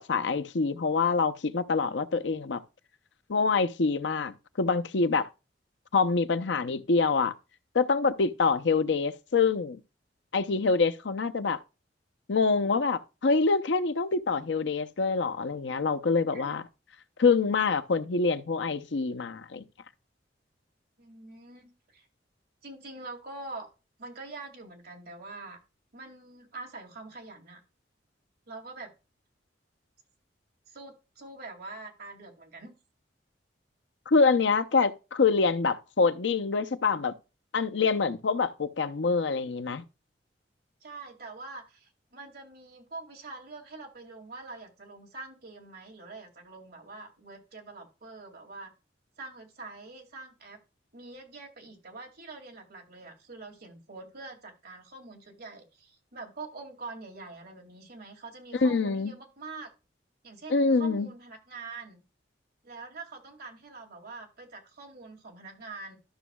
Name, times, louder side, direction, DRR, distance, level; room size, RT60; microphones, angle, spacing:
voice 1, 0.0-2.6 3.3-5.3 5.9-7.3 7.7-9.8 10.3-11.6 12.3-16.6 17.2-19.6 34.1-37.1 37.5-39.8 58.6-59.1 60.5-61.1, left 4 dB, 80° left, 0.6 m, -25 dB
voice 2, 21.0-22.1 22.6-23.7 24.0-25.6 25.9-27.6 28.5-28.9 30.7-32.7 40.8-48.7 49.2-50.6 50.9-59.7 60.2-62.0 62.6-66.0, right 3 dB, 60° right, 2.3 m, -45 dB
13.0 x 6.1 x 2.3 m
head